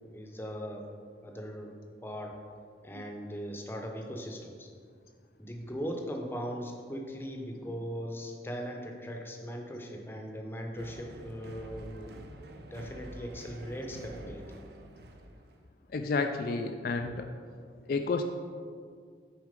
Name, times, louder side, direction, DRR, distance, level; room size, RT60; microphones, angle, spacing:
voice 1, 0.1-1.7 2.0-2.3 2.8-4.7 5.4-12.1 12.7-14.6, equal, 10° left, 1 dB, 0.7 m, -39 dB
sound 1, 10.7-15.6, right 1 dB, 65° right, 0.6 m, -47 dB
voice 2, 15.9-17.3 17.9-18.2, left 4 dB, 55° left, 5 dB, 0.3 m, -30 dB
6.4 x 4.7 x 5.1 m, 2.1 s
head